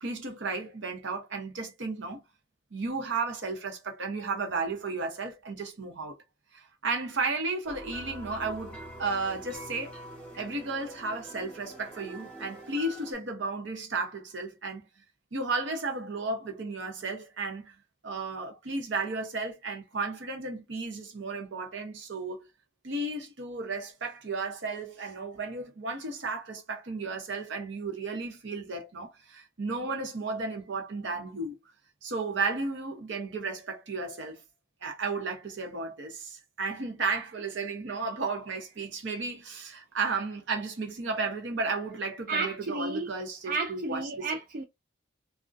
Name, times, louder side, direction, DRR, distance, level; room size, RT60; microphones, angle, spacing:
voice 1, 0.0-2.2 2.7-6.1 6.5-9.9 10.4-14.8 15.3-17.8 18.0-22.5 22.8-31.6 32.0-34.4 34.8-44.3, right 3 dB, 65° right, 0.7 m, -34 dB
sound 1, 7.6-13.1, equal, 5° left, 0.6 m, -45 dB
voice 2, 42.3-43.1 43.5-44.6, right 3 dB, 45° right, 0.3 m, -32 dB
2.4 x 2.1 x 2.5 m
head